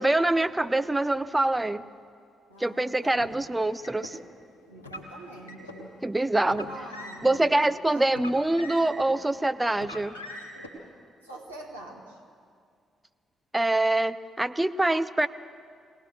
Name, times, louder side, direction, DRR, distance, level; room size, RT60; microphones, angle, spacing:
voice 1, 0.0-1.8 2.6-4.2 6.0-6.7 7.2-10.1 13.5-15.3, right 2 dB, 15° right, 12 dB, 0.7 m, -25 dB
voice 2, 2.5-3.3 4.7-5.9 6.4-8.0 11.2-12.2, right 1 dB, 90° right, -4 dB, 2.1 m, -45 dB
Car, 3.1-4.1 4.8-5.8 6.4-7.4 8.1-9.2 9.7-10.7, left 1 dB, 80° left, 1.7 m, -42 dB
22.0 x 18.0 x 6.6 m, 2.2 s
figure-of-eight pair, 40°, 0 cm